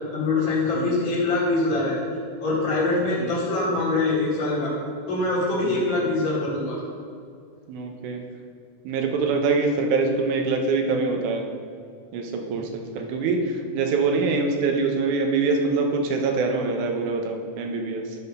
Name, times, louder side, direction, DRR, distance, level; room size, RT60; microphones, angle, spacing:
voice 1, 0.1-2.0 2.4-4.7 5.1-6.8, left 2 dB, 45° left, -9 dB, 2.4 m, -24 dB
voice 2, 7.7-8.2 8.9-11.4 12.1-18.0, right 4 dB, 80° right, 3 dB, 2.3 m, -24 dB
11.0 x 4.3 x 5.3 m, 2.3 s
omnidirectional pair, 3.5 m